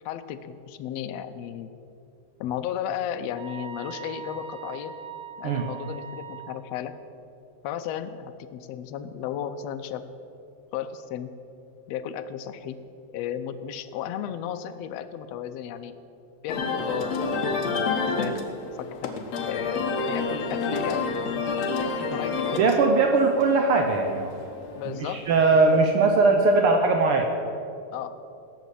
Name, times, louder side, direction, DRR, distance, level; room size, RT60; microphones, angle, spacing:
voice 1, 0.0-1.7 2.4-4.9 5.4-7.0 7.6-10.1 10.7-11.3 11.9-12.8 13.1-16.0 16.4-17.8 18.2-19.1 19.5-21.3 21.8-22.9 24.7-25.2 25.7-25.9 27.9-28.2, left 9 dB, 80° left, 9 dB, 1.5 m, -34 dB
sound 1, 3.4-6.6, right 8 dB, 35° right, 2.1 m, -41 dB
sound 2, 16.5-25.9, left 4 dB, 60° left, 2.1 m, -30 dB
voice 2, 22.6-24.3 24.9-27.3, right 3 dB, 80° right, 4 dB, 1.2 m, -20 dB
16.5 x 7.1 x 8.3 m, 2.7 s
omnidirectional pair, 3.6 m